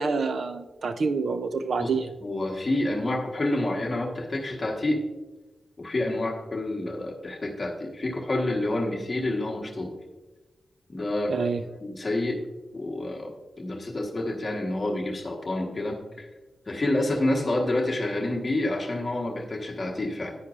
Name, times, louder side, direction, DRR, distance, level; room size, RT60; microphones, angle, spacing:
voice 1, 0.0-2.1 11.3-11.6, right 4 dB, 50° right, 9 dB, 0.4 m, -27 dB
voice 2, 2.2-5.0 5.8-9.9 10.9-11.5 11.8-12.4 12.7-13.3 13.6-16.3 16.7-20.4, left 1 dB, 25° left, 0 dB, 1.2 m, -28 dB
10.0 x 9.8 x 2.4 m, 1.1 s
wide cardioid pair, 180°, 0 cm